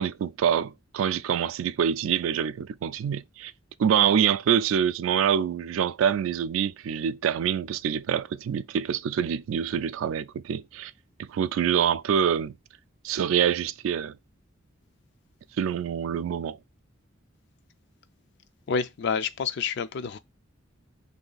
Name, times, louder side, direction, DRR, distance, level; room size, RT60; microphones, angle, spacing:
voice 1, 0.0-3.5 3.8-10.9 11.2-12.5 13.0-14.2 15.6-16.6, right 8 dB, 80° right, 0.3 m, -25 dB
voice 2, 18.7-20.2, left 6 dB, 60° left, 0.4 m, -28 dB
3.0 x 2.7 x 3.9 m
head